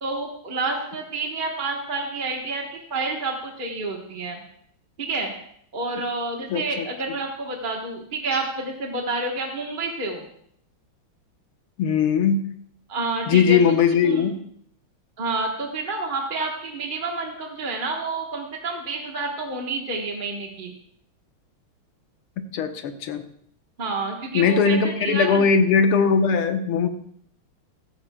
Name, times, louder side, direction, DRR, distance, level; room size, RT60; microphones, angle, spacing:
voice 1, 0.0-4.4 5.0-5.3 5.7-10.2 12.9-13.8 14.0-14.2 15.2-20.7 23.8-25.5, right 3 dB, 30° right, 0 dB, 1.0 m, -29 dB
voice 2, 6.5-6.9 11.8-12.4 13.3-14.4 22.5-23.2 24.3-26.9, left 6 dB, 85° left, 7 dB, 1.8 m, -20 dB
14.5 x 14.0 x 2.2 m, 0.67 s
omnidirectional pair, 2.4 m